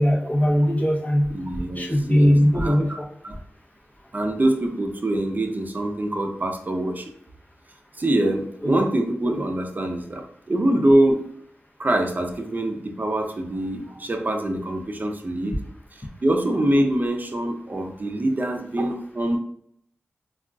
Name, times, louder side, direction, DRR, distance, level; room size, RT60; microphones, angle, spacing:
voice 1, 0.0-1.3 1.8-2.9 8.6-8.8, equal, 35° left, -4 dB, 0.8 m, -19 dB
voice 2, 1.3-3.0 3.2-3.4 4.1-7.1 8.0-11.2 11.8-15.6 16.2-19.4, right 1 dB, 40° right, 4 dB, 0.5 m, -24 dB
3.4 x 2.3 x 2.3 m, 0.67 s
cardioid pair, 50°, 5 cm